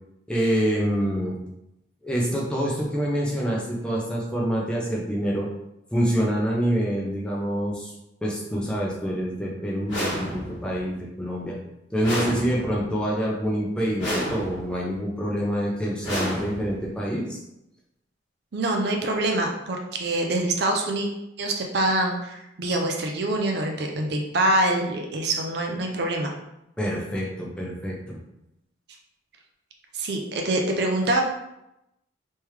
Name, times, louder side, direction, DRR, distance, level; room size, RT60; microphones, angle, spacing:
voice 1, 0.3-1.4 2.0-5.5 5.9-7.9 8.2-11.6 11.9-17.4 26.8-28.2, equal, 5° left, -4 dB, 0.7 m, -26 dB
sound 1, 9.9-10.7 12.0-12.9 14.0-14.8 16.0-16.9, equal, 65° left, 1.5 m, -30 dB
voice 2, 18.5-21.1 21.4-26.3 29.9-31.2, right 1 dB, 55° right, 2 dB, 0.5 m, -25 dB
3.5 x 3.2 x 3.2 m, 0.85 s
head